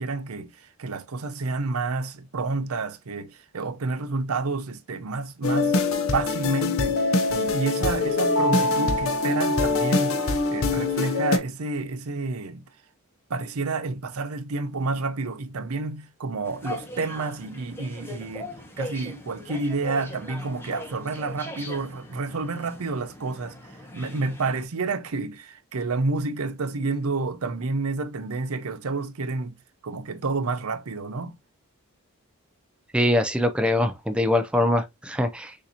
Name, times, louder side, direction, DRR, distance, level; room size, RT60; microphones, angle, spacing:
voice 1, 0.0-5.8 6.1-7.0 7.3-12.6 13.3-23.6 23.9-29.6 29.8-31.4, right 3 dB, 75° right, 0.6 m, -29 dB
sound 1, 5.4-11.4, left 3 dB, 65° left, 0.8 m, -23 dB
sound 2, 16.4-24.6, left 2 dB, 10° left, 0.9 m, -40 dB
voice 2, 32.9-35.5, left 1 dB, 5° right, 0.4 m, -23 dB
6.5 x 2.7 x 2.8 m
head